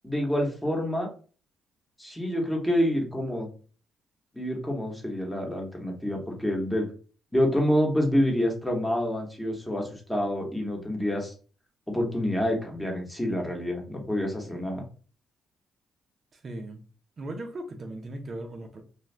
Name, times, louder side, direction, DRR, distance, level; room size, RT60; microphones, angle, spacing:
voice 1, 0.0-1.1 2.0-3.5 4.3-6.9 7.3-11.3 11.9-14.8, equal, 5° left, 0 dB, 1.0 m, -27 dB
voice 2, 16.3-16.8 17.2-18.8, right 1 dB, 45° right, 3 dB, 0.5 m, -38 dB
2.6 x 2.3 x 3.2 m, 0.38 s
cardioid pair, 90°, 0 cm